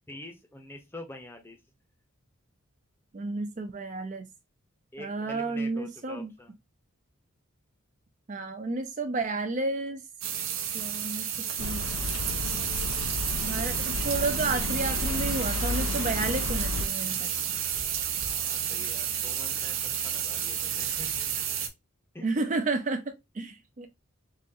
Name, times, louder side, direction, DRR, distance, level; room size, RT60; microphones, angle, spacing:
voice 1, 0.1-1.6 4.9-6.6 18.2-21.4 22.1-22.3, left 1 dB, 10° left, 0.7 m, -46 dB
voice 2, 3.1-4.3 5.0-6.3 8.3-10.0 10.7-11.9 13.4-17.3 22.2-23.9, right 3 dB, 35° right, 0.4 m, -31 dB
sound 1, 10.2-21.7, right 9 dB, 70° right, 0.7 m, -31 dB
sound 2, 11.6-16.9, left 4 dB, 75° left, 0.4 m, -33 dB
3.8 x 2.9 x 2.7 m
head